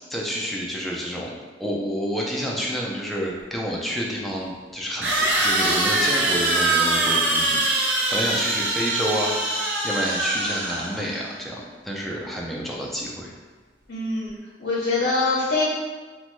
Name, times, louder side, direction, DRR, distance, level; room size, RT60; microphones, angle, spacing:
voice 1, 0.1-1.3 1.6-13.3, equal, ahead, -3 dB, 0.4 m, -29 dB
sound 1, 3.4-3.5 5.0-11.1, right 2 dB, 85° right, 0.5 m, -23 dB
voice 2, 13.9-14.3 14.6-15.7, left 3 dB, 65° left, -6 dB, 0.5 m, -23 dB
2.9 x 2.2 x 3.0 m, 1.3 s
head